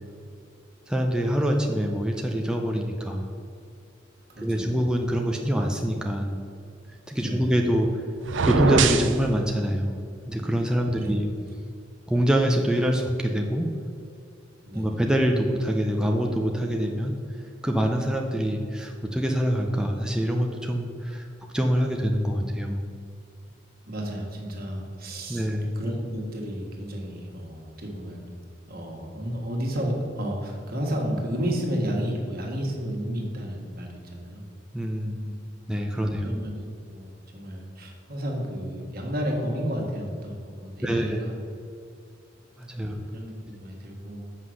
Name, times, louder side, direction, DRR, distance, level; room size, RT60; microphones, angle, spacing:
voice 1, 0.9-3.3 4.4-6.3 7.1-7.9 8.4-9.9 10.3-11.3 12.1-13.7 14.7-17.1 17.6-21.3 21.5-22.8 25.3-25.8 34.7-35.3 35.7-36.3 40.8-41.2 42.6-43.0, equal, 5° right, 1 dB, 0.6 m, -25 dB
voice 2, 4.3-4.8 7.2-7.6 10.9-11.2 14.6-15.0 23.9-25.5 25.7-28.2 28.7-34.4 35.9-41.4 42.8-44.2, equal, 50° right, 0 dB, 1.7 m, -32 dB
sound 1, 8.2-9.2, right 4 dB, 70° right, 0.6 m, -22 dB
7.7 x 5.8 x 6.3 m, 2.4 s
head